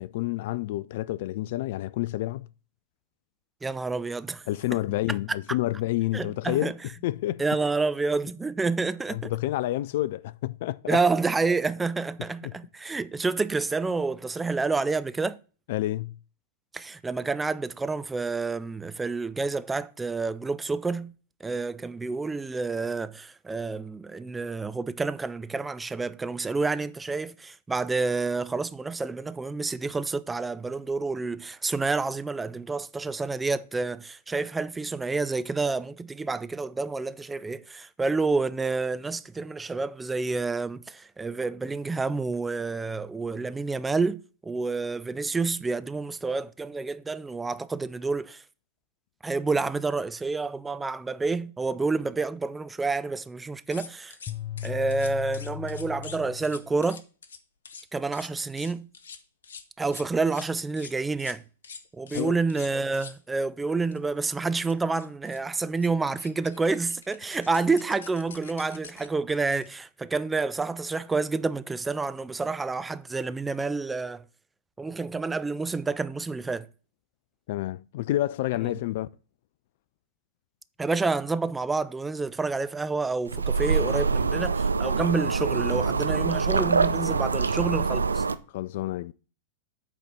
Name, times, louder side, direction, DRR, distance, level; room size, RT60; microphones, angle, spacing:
voice 1, 0.0-2.5 4.5-6.7 7.0-7.4 9.1-11.0 12.4-12.6 15.7-16.2 62.1-62.4 77.5-79.1 88.5-89.1, left 15 dB, 55° left, 0.3 m, -29 dB
voice 2, 3.6-4.4 6.1-6.7 7.4-9.3 10.9-15.4 16.7-21.1 21.4-48.4 49.2-54.2 54.6-57.0 57.9-58.9 59.8-61.4 61.9-74.2 74.8-76.7 78.6-78.7 80.8-88.2, right 3 dB, 10° right, 0.5 m, -29 dB
sound 1, 53.7-56.2 56.4-57.4 57.6-57.8 58.1-58.3 58.6-60.5 60.8-60.9 61.2-61.4 61.6-63.2 63.9-64.0 64.3-64.4 64.6-65.4 65.8-65.9 66.2-69.7, left 6 dB, 70° left, 0.8 m, -45 dB
sound 2, 54.3-56.8, left 11 dB, 25° left, 0.7 m, -37 dB
sound 3, 83.3-88.4, right 4 dB, 80° right, 0.4 m, -25 dB
8.3 x 4.1 x 5.9 m
figure-of-eight pair, 100°, 0 cm